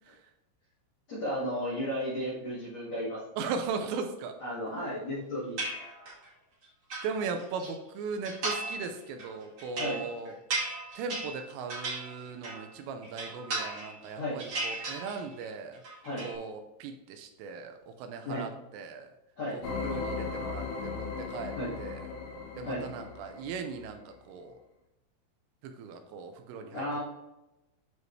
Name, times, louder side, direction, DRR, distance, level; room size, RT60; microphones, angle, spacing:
voice 1, 1.1-3.5 4.4-5.6 9.8-10.0 14.1-14.4 16.0-16.3 18.2-18.5 19.4-19.6 21.6-21.7 22.6-22.9 26.7-27.0, equal, 50° left, -8 dB, 2.1 m, -34 dB
voice 2, 3.4-4.4 7.0-10.4 10.9-15.8 16.2-19.1 19.5-22.1 22.6-24.6 25.6-26.9, right 5 dB, 80° right, 6 dB, 3.2 m, -38 dB
sound 1, 5.6-6.3 6.6-7.7 8.2-8.9 9.2-12.7 13.0-14.1 14.4-15.5 15.7-16.3, right 2 dB, 40° right, 1.9 m, -36 dB
sound 2, 19.6-23.9, left 4 dB, 75° left, 4.0 m, -37 dB
9.4 x 5.2 x 3.2 m, 0.95 s
omnidirectional pair, 5.9 m